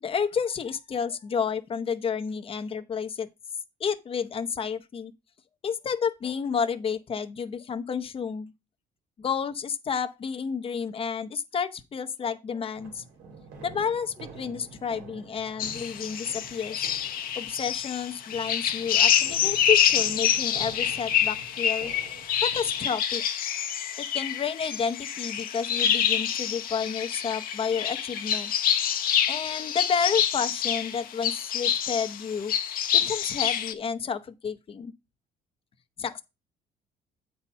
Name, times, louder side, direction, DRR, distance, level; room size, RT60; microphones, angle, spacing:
voice 1, 0.0-3.3 3.8-5.1 5.6-8.5 9.2-13.0 13.6-16.9 17.3-21.9 22.4-23.2 24.0-28.5 29.3-32.5 32.9-34.9 36.0-36.2, left 6 dB, 35° left, 0.8 m, -30 dB
sound 1, 12.7-22.9, right 5 dB, 85° right, 2.4 m, -48 dB
sound 2, 15.6-33.7, left 9 dB, 60° left, 0.9 m, -27 dB
8.6 x 4.2 x 5.5 m
cardioid pair, 110°, 17 cm